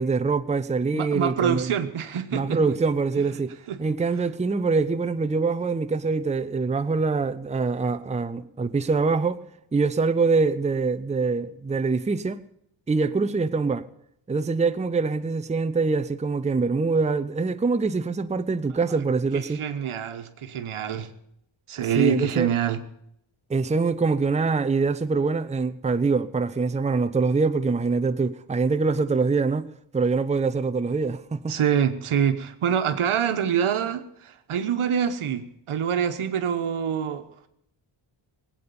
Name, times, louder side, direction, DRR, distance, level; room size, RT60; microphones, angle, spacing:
voice 1, 0.0-1.7 2.3-3.5 3.8-9.4 9.7-12.4 12.9-13.8 14.3-19.6 22.0-22.5 23.5-29.7 29.9-31.6, right 4 dB, 15° right, 0.6 m, -24 dB
voice 2, 0.9-2.6 3.2-3.3 3.7-3.8 19.3-21.1 21.7-22.8 31.5-37.5, right 8 dB, 80° right, 1.3 m, -26 dB
19.0 x 8.8 x 7.0 m
cardioid pair, 80°, 49 cm